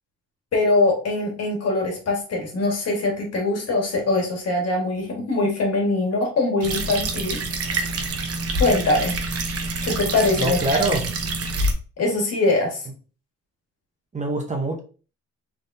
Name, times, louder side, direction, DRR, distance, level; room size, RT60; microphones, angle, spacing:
voice 1, 0.5-7.4 7.7-8.2 8.6-9.1 9.8-10.8 12.0-12.8, left 2 dB, 55° left, 0 dB, 1.7 m, -22 dB
sound 1, 6.6-11.7, right 2 dB, 50° right, 0.9 m, -26 dB
voice 2, 10.4-11.1 14.1-14.8, right 2 dB, 25° right, 2 dB, 0.9 m, -24 dB
3.5 x 3.5 x 2.7 m, 0.37 s
cardioid pair, 90°, 30 cm